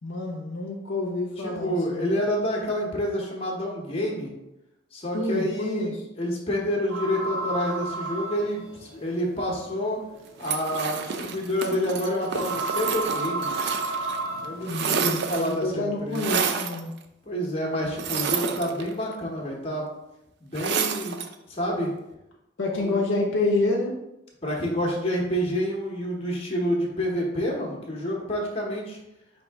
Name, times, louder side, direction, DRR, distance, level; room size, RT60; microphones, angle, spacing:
voice 1, 0.0-2.1 5.1-5.9 14.7-16.9 22.6-23.9, left 2 dB, 60° left, 0 dB, 0.6 m, -28 dB
voice 2, 1.4-4.3 4.9-10.0 10.4-13.7 14.4-16.3 17.3-19.9 20.4-21.9 22.8-23.0 24.4-29.0, equal, 30° left, -1 dB, 0.9 m, -28 dB
sound 1, 6.9-15.3, right 2 dB, 75° right, 0.7 m, -33 dB
sound 2, 10.4-14.2 14.4-15.6 16.1-16.8 17.9-19.1 20.5-21.3, right 6 dB, 55° right, 0.3 m, -29 dB
5.2 x 2.7 x 3.4 m, 0.90 s
head